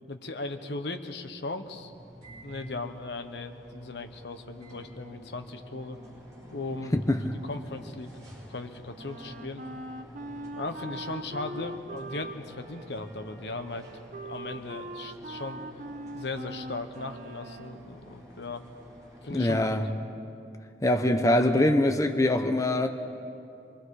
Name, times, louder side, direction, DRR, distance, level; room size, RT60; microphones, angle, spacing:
voice 1, 0.1-1.9 2.4-6.0 6.5-7.0 7.4-8.1 8.5-9.6 10.5-13.9 14.2-15.6 16.1-18.6 19.2-19.8, left 2 dB, 75° left, 1.2 m, -37 dB
sound 1, 1.6-19.7, equal, 20° right, 6.3 m, -49 dB
Wind instrument woodwind instrument, 9.0-17.8, right 1 dB, 45° right, 1.0 m, -41 dB
voice 2, 19.3-19.9 20.8-22.9, left 1 dB, 20° left, 0.8 m, -23 dB
25.0 x 23.5 x 4.9 m
head